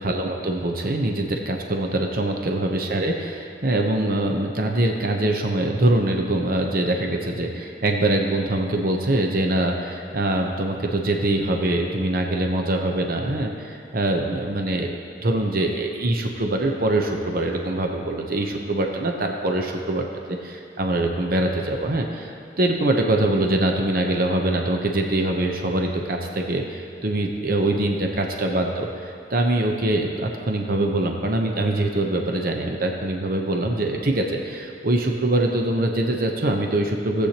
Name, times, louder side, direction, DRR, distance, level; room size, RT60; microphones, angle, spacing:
voice 1, 0.0-20.0 20.4-37.3, right 1 dB, 55° right, 2 dB, 0.8 m, -23 dB
17.5 x 8.3 x 2.9 m, 2.7 s
head